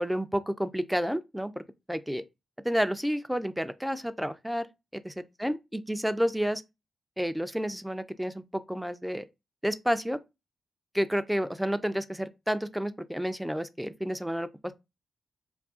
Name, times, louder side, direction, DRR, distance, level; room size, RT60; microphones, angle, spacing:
voice 1, 0.0-1.6 1.9-2.2 2.6-4.7 4.9-6.6 7.2-9.2 9.6-10.2 10.9-14.5, equal, 5° right, 0.4 m, -30 dB
2.5 x 2.3 x 3.6 m
supercardioid pair, 50°, 0 cm